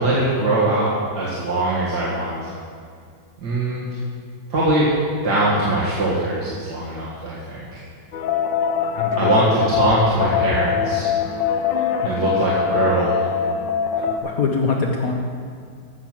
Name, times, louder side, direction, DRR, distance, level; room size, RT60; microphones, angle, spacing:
voice 1, 0.0-2.5 3.4-3.8 4.5-4.9 5.2-7.8 9.2-11.1 12.0-13.3, right 2 dB, 65° right, -8 dB, 2.5 m, -21 dB
sound 1, 8.1-14.2, left 7 dB, 90° left, 1.5 m, -23 dB
voice 2, 8.9-9.3 12.0-12.2 14.0-15.1, left 4 dB, 55° left, 0 dB, 1.3 m, -24 dB
15.0 x 6.7 x 6.0 m, 2.2 s
omnidirectional pair, 1.9 m